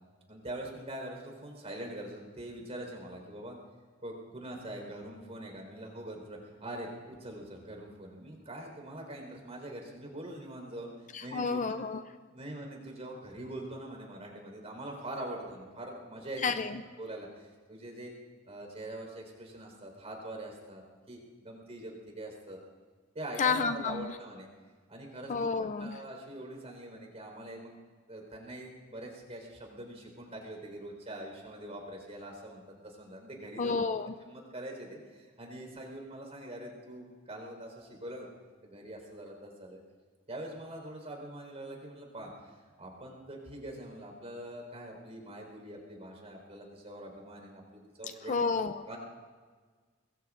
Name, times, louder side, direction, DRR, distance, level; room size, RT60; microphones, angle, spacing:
voice 1, 0.3-3.6 4.0-10.9 11.2-11.6 12.3-16.6 17.0-18.1 18.5-22.6 23.1-24.5 24.9-27.7 28.1-33.8 34.2-38.3 38.6-39.8 40.3-48.5 48.9-49.0, right 1 dB, 35° right, 1 dB, 4.4 m, -43 dB
voice 2, 11.1-12.0 16.4-16.8 23.4-24.1 25.3-26.0 33.6-34.1 48.3-48.7, left 5 dB, 40° left, 9 dB, 0.5 m, -30 dB
25.5 x 21.0 x 2.6 m, 1.5 s
head